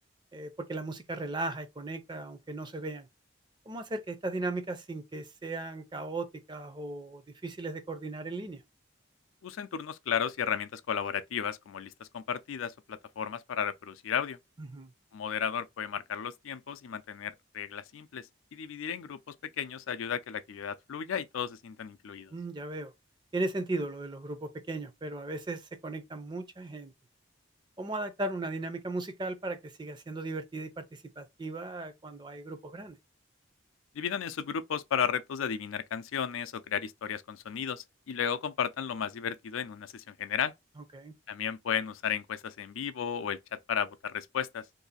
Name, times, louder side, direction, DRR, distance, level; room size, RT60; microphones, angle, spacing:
voice 1, 0.3-3.1 3.7-8.6 14.6-14.9 22.3-22.9 23.3-26.9 27.8-33.0 40.9-41.1, right 2 dB, 25° right, 0.5 m, -37 dB
voice 2, 9.4-14.4 15.1-22.3 33.9-40.5 41.3-44.6, left 7 dB, 85° left, 0.4 m, -34 dB
2.7 x 2.4 x 3.9 m
head